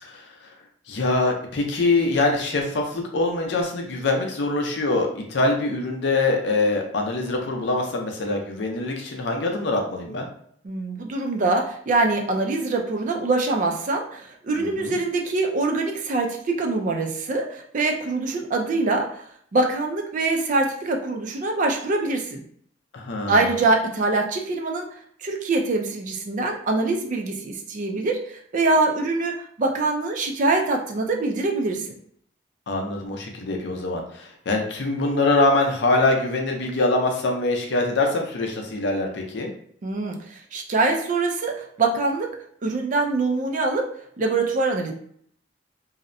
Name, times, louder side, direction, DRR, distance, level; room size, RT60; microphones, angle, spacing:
voice 1, 0.9-10.3 14.6-15.0 22.9-23.5 32.7-39.5, left 2 dB, 65° left, 2 dB, 0.5 m, -24 dB
voice 2, 10.6-19.2 19.5-22.4 23.3-24.9 25.2-31.9 39.8-42.3 42.6-43.9 44.2-44.9, right 3 dB, 40° right, 2 dB, 0.4 m, -24 dB
2.7 x 2.1 x 2.5 m, 0.63 s
head